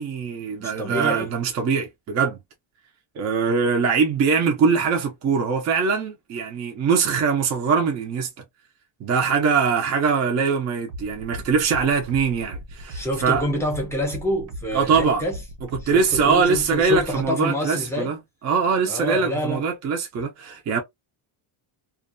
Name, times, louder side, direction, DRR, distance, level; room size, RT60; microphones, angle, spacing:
voice 1, 0.0-2.4 3.2-8.3 9.0-13.4 14.7-15.2 15.7-18.2 18.4-20.8, right 5 dB, 35° right, 0.5 m, -22 dB
voice 2, 0.6-1.3 12.9-15.4 15.8-18.1 18.9-19.6, equal, 5° left, 0.6 m, -27 dB
sound 1, 10.9-17.2, equal, 90° right, 1.0 m, -37 dB
2.5 x 2.2 x 2.5 m
cardioid pair, 150°, 49 cm